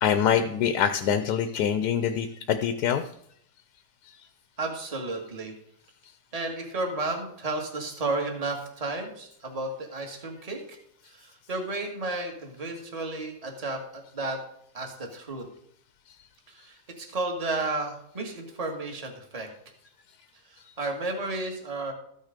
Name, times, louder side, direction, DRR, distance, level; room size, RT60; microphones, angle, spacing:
voice 1, 0.0-3.0, left 8 dB, 80° left, 9 dB, 1.2 m, -24 dB
voice 2, 4.6-5.5 6.3-10.8 11.1-14.4 14.7-15.4 16.5-19.5 20.5-21.9, right 2 dB, 25° right, 2 dB, 1.7 m, -33 dB
13.5 x 6.5 x 5.1 m, 0.69 s
omnidirectional pair, 1.8 m